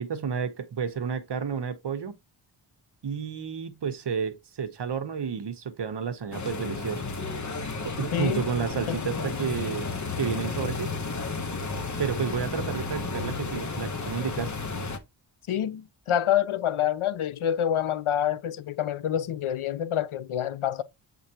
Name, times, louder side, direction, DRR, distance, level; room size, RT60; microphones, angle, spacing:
voice 1, 0.0-2.1 3.0-7.0 7.8-9.9 10.2-10.9 12.0-14.5, right 6 dB, 55° right, 1.0 m, -31 dB
sound 1, 6.3-15.0, left 4 dB, 35° left, 0.9 m, -32 dB
voice 2, 8.1-8.4 8.9-9.0 15.5-20.8, left 10 dB, 80° left, 0.7 m, -27 dB
7.6 x 5.0 x 2.8 m
wide cardioid pair, 175°, 49 cm